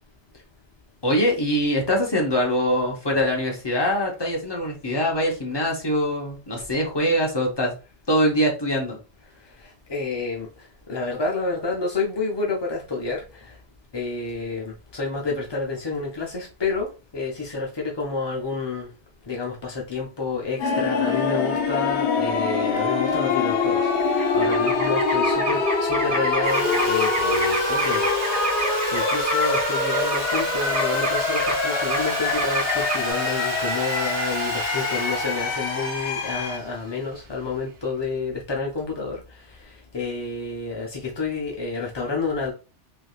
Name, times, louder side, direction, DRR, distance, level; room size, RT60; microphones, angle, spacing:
voice 1, 1.0-7.7 8.1-9.0, equal, 25° left, 0.7 m, -23 dB
voice 2, 9.9-10.5 10.9-13.5 13.9-18.9 19.3-28.1 28.7-39.2 39.6-42.5, left 4 dB, 45° left, 0.3 m, -29 dB
sound 1, 20.6-36.6, left 4 dB, 70° left, 0.9 m, -24 dB
sound 2, 24.0-29.7 29.9-33.0, right 2 dB, 50° right, 1.0 m, -29 dB
Sawing, 26.4-37.5, right 5 dB, 85° right, 1.1 m, -33 dB
3.3 x 2.6 x 2.3 m
omnidirectional pair, 1.2 m